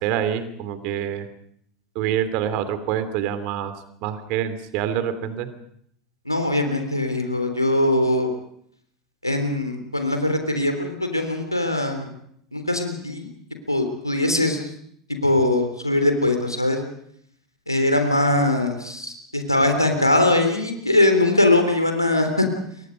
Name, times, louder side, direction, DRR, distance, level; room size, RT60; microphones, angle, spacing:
voice 1, 0.0-1.3 1.9-3.7 4.0-5.5, right 10 dB, 50° right, 11 dB, 3.0 m, -26 dB
voice 2, 6.2-8.3 9.2-12.1 12.5-13.3 13.7-14.7 15.2-16.8 17.7-22.5, left 1 dB, 90° left, 6 dB, 3.4 m, -21 dB
28.5 x 24.0 x 5.3 m, 0.68 s
figure-of-eight pair, 80°, 2 cm